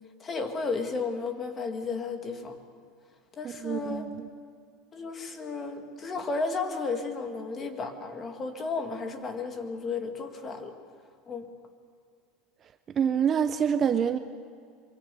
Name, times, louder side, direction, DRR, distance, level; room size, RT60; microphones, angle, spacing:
voice 1, 0.2-2.6 3.4-4.1 4.9-10.7 11.3-11.5, left 4 dB, 25° left, 6 dB, 2.0 m, -33 dB
voice 2, 3.6-4.3 13.0-14.2, right 7 dB, 25° right, 10 dB, 0.7 m, -26 dB
24.5 x 24.0 x 7.0 m, 2.2 s
supercardioid pair, 155°, 0 cm